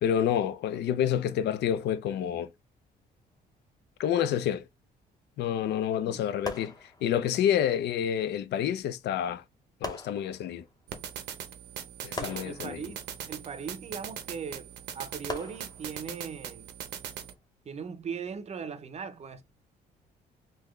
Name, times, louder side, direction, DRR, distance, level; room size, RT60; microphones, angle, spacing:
voice 1, 0.0-2.5 4.0-4.6 5.4-6.7 7.0-9.4 9.8-10.6 12.0-12.8, left 9 dB, 75° left, 0.4 m, -28 dB
sound 1, 6.4-7.5 8.8-8.9 9.8-10.8 12.2-13.5 15.3-16.3 17.0-17.3, left 2 dB, 20° left, 0.7 m, -41 dB
sound 2, 10.9-17.3, right 9 dB, 75° right, 0.7 m, -41 dB
voice 2, 12.2-13.0 13.3-16.7 17.6-19.4, right 6 dB, 40° right, 0.6 m, -39 dB
3.9 x 2.7 x 3.1 m
cardioid pair, 125°, 18 cm